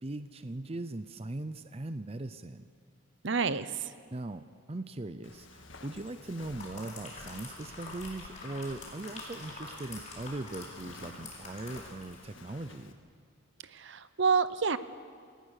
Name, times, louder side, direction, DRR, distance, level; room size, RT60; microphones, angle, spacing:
voice 1, 0.0-2.7 4.1-13.0, right 2 dB, 30° right, 11 dB, 0.6 m, -40 dB
voice 2, 3.2-3.7 13.7-14.8, right 5 dB, 60° right, 14 dB, 0.8 m, -28 dB
Walk footsteps, 5.2-12.9, left 3 dB, 65° left, 1.8 m, -52 dB
sound 1, 6.2-12.3 12.6-12.8, left 2 dB, 35° left, 5.0 m, -46 dB
29.0 x 18.5 x 6.6 m, 2.1 s
head